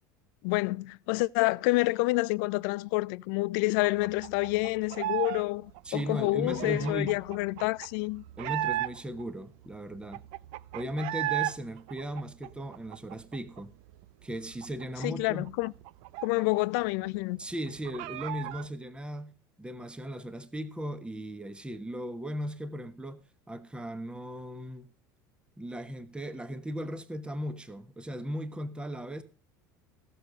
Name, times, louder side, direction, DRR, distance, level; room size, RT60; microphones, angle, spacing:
voice 1, 0.4-8.2 15.0-15.7 16.2-17.4, left 23 dB, 70° left, 0.5 m, -28 dB
sound 1, 3.8-5.4 5.7-9.2 9.6-9.7 9.9-11.6 11.9-13.6 13.9-14.0 14.3-16.8 17.1-17.2 17.5-18.7, right 16 dB, 65° right, 0.6 m, -35 dB
voice 2, 5.8-7.2 8.4-10.2 10.7-13.7 14.2-15.5 17.4-19.3 19.6-24.9 25.6-29.2, equal, 10° right, 1.2 m, -37 dB
16.0 x 6.8 x 5.1 m
hypercardioid pair, 80°, 11 cm